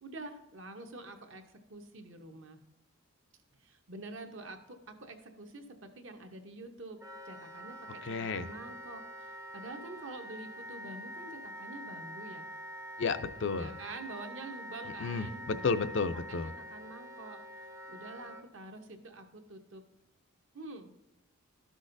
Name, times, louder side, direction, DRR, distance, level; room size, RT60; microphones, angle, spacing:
voice 1, 0.0-1.4 1.7-2.6 3.6-7.0 7.3-8.0 8.3-12.4 13.5-15.7 16.3-16.4 16.7-17.4 17.9-19.8 20.5-20.9, right 2 dB, 60° right, 6 dB, 0.9 m, -47 dB
Wind instrument woodwind instrument, 7.0-18.4, equal, 15° right, 0.5 m, -46 dB
voice 2, 8.0-8.5 13.0-13.7 15.0-16.5, left 4 dB, 55° left, 10 dB, 0.4 m, -32 dB
12.5 x 6.2 x 2.6 m, 0.97 s
head